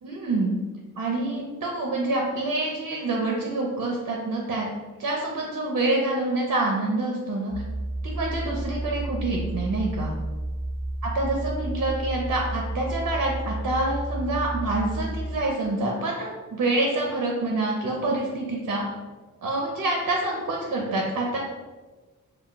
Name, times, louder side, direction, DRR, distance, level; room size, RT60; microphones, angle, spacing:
voice 1, 0.0-0.5 1.0-4.7 5.0-7.5 8.0-10.1 11.0-18.8 19.4-21.4, right 2 dB, 60° right, -2 dB, 0.6 m, -27 dB
sound 1, 7.5-15.4, right 1 dB, 25° right, 0.7 m, -31 dB
2.3 x 2.2 x 3.7 m, 1.3 s
cardioid pair, 60°, 34 cm